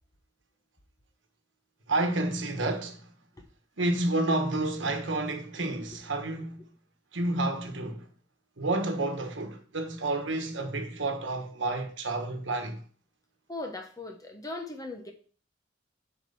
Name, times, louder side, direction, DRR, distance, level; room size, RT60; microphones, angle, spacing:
voice 1, 1.9-3.1 3.8-6.6 7.1-8.1 8.6-12.8, right 2 dB, 70° right, 1.3 m, -30 dB
voice 2, 13.5-15.1, left 2 dB, 20° left, 1.1 m, -38 dB
7.8 x 4.5 x 5.6 m
head